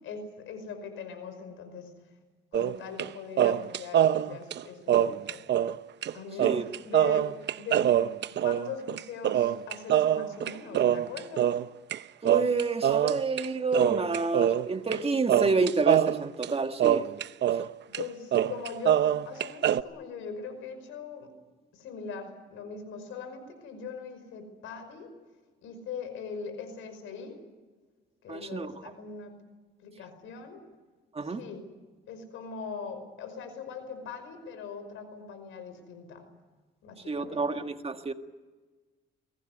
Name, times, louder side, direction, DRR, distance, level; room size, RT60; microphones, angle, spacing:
voice 1, 0.0-1.9 2.5-5.4 6.1-7.3 7.6-7.9 8.4-11.6 17.9-21.3 21.7-25.1 25.6-27.4 28.2-29.3 29.8-30.6 31.2-31.6 32.1-36.2 36.8-37.7, left 5 dB, 90° left, 9 dB, 5.4 m, -41 dB
sound 1, 2.5-3.1 3.4-5.8 6.0-6.1 6.4-12.0 12.3-13.5 13.7-15.0 15.3-17.7 17.9-18.0 18.3-19.8, right 10 dB, 60° right, 0.8 m, -25 dB
voice 2, 12.2-17.0 28.3-28.7 31.1-31.4 37.1-38.1, right 4 dB, 30° right, 7 dB, 1.8 m, -29 dB
23.0 x 18.5 x 9.4 m, 1.3 s
cardioid pair, 90°, 20 cm